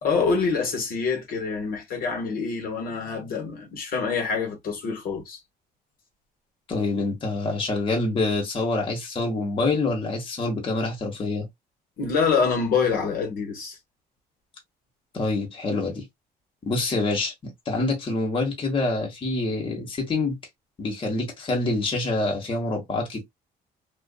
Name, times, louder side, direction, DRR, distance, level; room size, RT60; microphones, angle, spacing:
voice 1, 0.0-5.4 12.0-13.8, left 5 dB, 60° left, 1.1 m, -26 dB
voice 2, 6.7-11.5 15.1-16.0 16.6-20.4 20.8-23.2, left 3 dB, 30° left, 1.1 m, -26 dB
2.5 x 2.4 x 2.3 m
cardioid pair, 110°, 17 cm